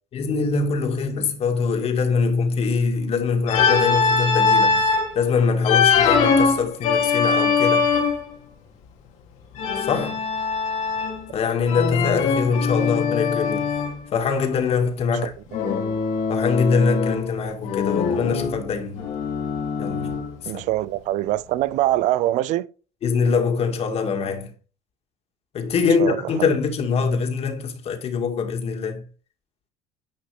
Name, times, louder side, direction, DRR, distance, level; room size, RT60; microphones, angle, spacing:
voice 1, 0.1-4.9 5.1-7.9 9.8-10.2 11.3-13.7 14.1-15.3 16.3-19.1 19.8-20.6 23.0-24.5 25.5-29.0, left 5 dB, 50° left, 2.1 m, -23 dB
Organ, 3.5-5.1 5.6-8.3 9.6-11.3 11.7-14.0 15.5-17.3 17.6-20.4, left 5 dB, 70° left, 2.2 m, -22 dB
voice 2, 20.5-22.7 26.0-26.2, right 15 dB, 70° right, 0.6 m, -23 dB
10.5 x 5.2 x 3.5 m
supercardioid pair, 85°, 13 cm